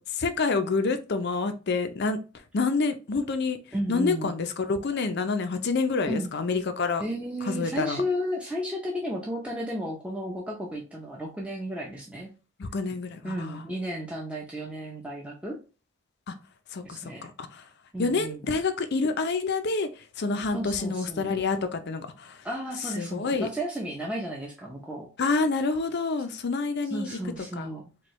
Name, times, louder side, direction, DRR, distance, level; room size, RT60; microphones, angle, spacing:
voice 1, 0.0-2.2 2.5-3.6 3.9-7.0 7.5-8.0 12.6-13.6 16.3-16.4 16.7-17.6 18.0-22.4 22.9-23.5 25.2-27.1 27.6-27.7, left 4 dB, 50° left, 0.5 m, -28 dB
voice 2, 3.7-4.3 6.1-6.3 7.0-12.3 13.2-15.6 16.8-17.3 17.9-18.4 20.5-21.3 22.4-25.1 26.9-27.8, equal, 5° right, 0.5 m, -33 dB
4.4 x 2.3 x 3.1 m
head